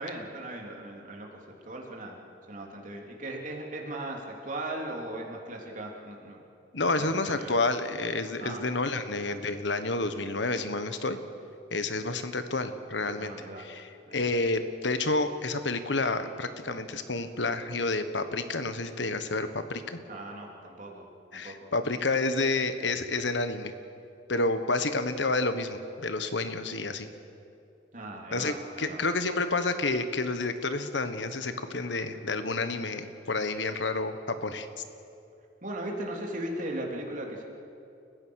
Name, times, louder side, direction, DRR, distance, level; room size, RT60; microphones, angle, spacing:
voice 1, 0.0-2.2 2.5-6.4 6.8-7.5 8.4-8.6 13.2-13.7 14.1-14.3 20.1-21.1 21.3-21.5 27.9-29.0 35.6-37.4, right 1 dB, 45° right, 0 dB, 3.3 m, -38 dB
voice 2, 6.7-11.2 11.7-13.3 13.6-20.0 21.3-23.7 24.3-27.1 28.3-34.7, left 3 dB, 90° left, 10 dB, 1.4 m, -29 dB
30.0 x 15.5 x 6.5 m, 2.6 s
head